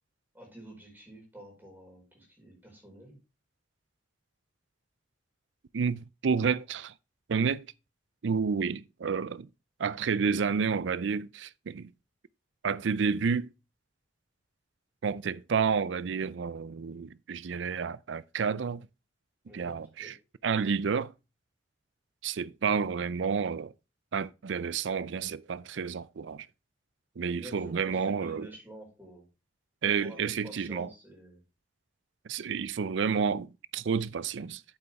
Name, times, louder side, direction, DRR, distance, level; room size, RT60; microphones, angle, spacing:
voice 1, 0.3-3.2 19.5-19.7 20.0-20.1 27.3-29.3 29.8-31.4, right 1 dB, 10° right, 5.0 m, -49 dB
voice 2, 5.7-6.9 7.3-7.7 8.2-9.5 9.8-11.9 12.6-13.5 15.0-18.9 19.5-20.2 20.4-21.1 22.2-23.7 24.1-26.5 27.2-28.5 29.8-30.9 32.2-34.6, right 6 dB, 70° right, 0.5 m, -30 dB
8.6 x 8.2 x 3.5 m
head